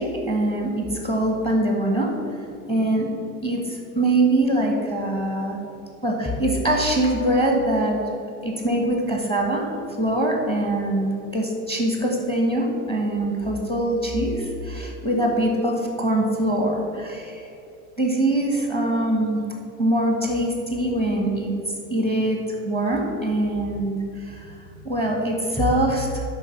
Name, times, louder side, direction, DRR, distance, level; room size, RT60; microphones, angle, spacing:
voice 1, 0.0-2.1 2.7-3.1 3.4-5.6 6.0-8.0 8.4-9.7 10.0-17.4 18.0-19.4 19.8-21.5 21.9-22.4 22.7-26.2, right 1 dB, 10° left, 0 dB, 1.5 m, -23 dB
11.0 x 4.0 x 5.8 m, 2.6 s
figure-of-eight pair, 80°, 48 cm